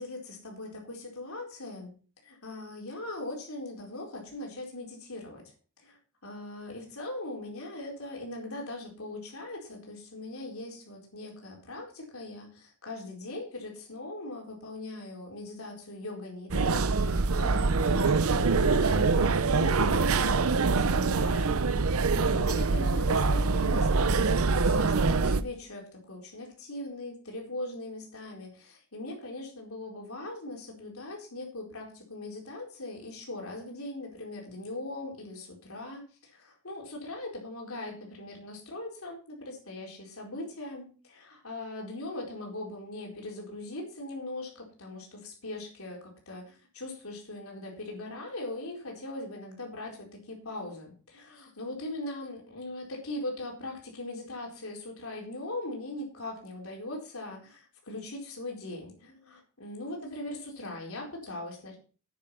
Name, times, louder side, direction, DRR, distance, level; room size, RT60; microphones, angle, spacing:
voice 1, 0.0-1.9 2.2-5.4 5.8-21.5 22.0-46.0 46.3-61.8, left 2 dB, 70° left, 0 dB, 4.3 m, -40 dB
sound 1, 16.5-25.4, right 4 dB, 70° right, 0.7 m, -24 dB
9.4 x 9.2 x 5.8 m, 0.39 s
head